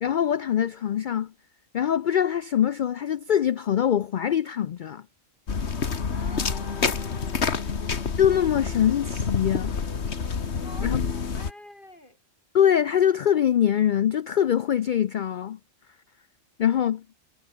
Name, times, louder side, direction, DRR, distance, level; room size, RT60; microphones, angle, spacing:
voice 1, 0.0-1.3 1.7-5.0 8.2-9.8 10.8-11.0 12.5-15.6 16.6-17.0, left 9 dB, 75° left, 0.4 m, -23 dB
sound 1, 5.5-11.5, left 5 dB, 55° left, 1.8 m, -28 dB
voice 2, 6.1-7.7 10.6-12.2, left 1 dB, 40° left, 6.9 m, -46 dB
omnidirectional pair, 1.4 m